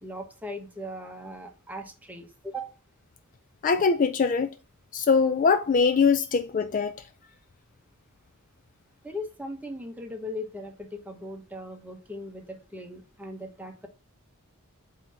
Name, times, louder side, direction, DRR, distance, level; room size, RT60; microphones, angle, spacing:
voice 1, 0.0-2.7 9.0-13.9, left 1 dB, 5° right, 1.0 m, -39 dB
voice 2, 3.6-4.5 4.9-7.0, left 5 dB, 35° left, 0.3 m, -22 dB
8.0 x 2.9 x 5.4 m
head